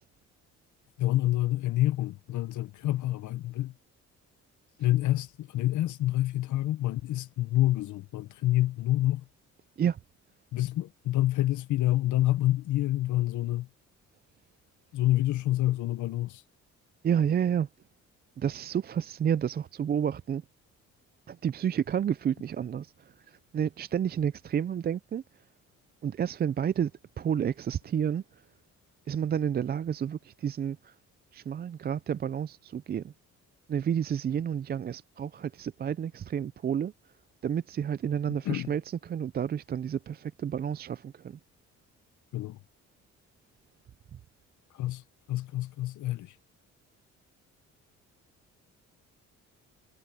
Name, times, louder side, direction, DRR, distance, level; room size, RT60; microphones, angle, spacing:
voice 1, 1.0-3.7 4.8-9.2 10.5-13.7 14.9-16.4 38.3-38.7 42.3-42.6 44.7-45.0 45.3-46.3, left 15 dB, 75° left, 0.8 m, -27 dB
voice 2, 17.0-17.7 18.4-20.4 21.3-22.9 23.3-25.2 26.0-26.9 27.2-28.2 29.1-30.9 31.3-33.1 33.7-36.9 37.4-41.4, right 8 dB, 35° right, 0.4 m, -30 dB
cardioid pair, 90°, 30 cm